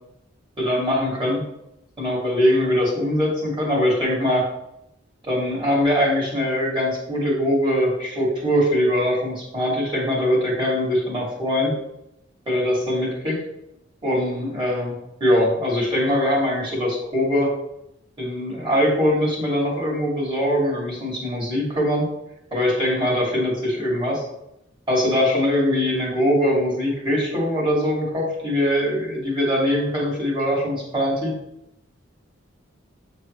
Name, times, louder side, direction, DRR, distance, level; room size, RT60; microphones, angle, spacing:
voice 1, 0.6-1.4 2.0-4.5 5.2-11.8 12.5-13.4 14.0-14.9 15.2-17.5 18.2-22.1 22.5-24.3 24.9-31.4, equal, 25° right, -5 dB, 2.6 m, -22 dB
8.6 x 4.0 x 3.2 m, 0.83 s
head